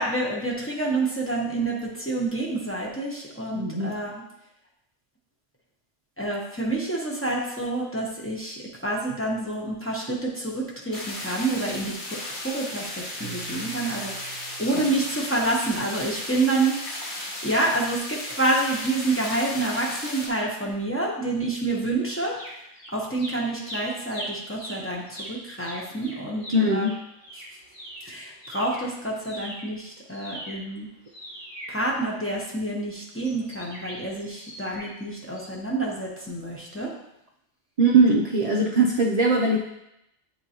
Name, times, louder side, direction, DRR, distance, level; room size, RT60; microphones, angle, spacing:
voice 1, 0.0-4.2 6.2-12.2 12.4-16.7 17.4-22.4 22.9-26.8 28.1-30.9 31.7-36.9, right 2 dB, 10° left, -4 dB, 0.9 m, -28 dB
voice 2, 3.6-3.9 14.7-14.8 26.5-26.9 37.8-39.6, right 2 dB, 50° right, -1 dB, 0.5 m, -20 dB
sound 1, 10.9-20.3, left 1 dB, 45° left, 1.1 m, -35 dB
Keyboard (musical), 13.2-16.1, right 9 dB, 65° left, 2.3 m, -46 dB
sound 2, 22.1-22.9 23.2-28.9 29.2-32.5 33.2-35.0 35.3-35.5, right 1 dB, 85° left, 2.6 m, -40 dB
8.8 x 3.7 x 2.9 m, 0.82 s
omnidirectional pair, 1.2 m